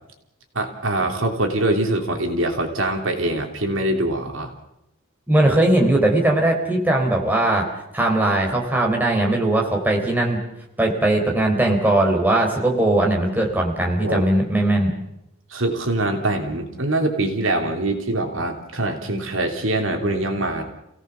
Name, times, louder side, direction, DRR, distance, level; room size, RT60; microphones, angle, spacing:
voice 1, 0.5-4.5 14.0-14.3 15.5-20.6, right 2 dB, 65° right, 4 dB, 3.1 m, -23 dB
voice 2, 5.3-7.7 7.9-10.4 10.8-14.9, right 1 dB, 10° right, 0 dB, 3.7 m, -19 dB
28.5 x 17.5 x 7.1 m, 0.86 s
head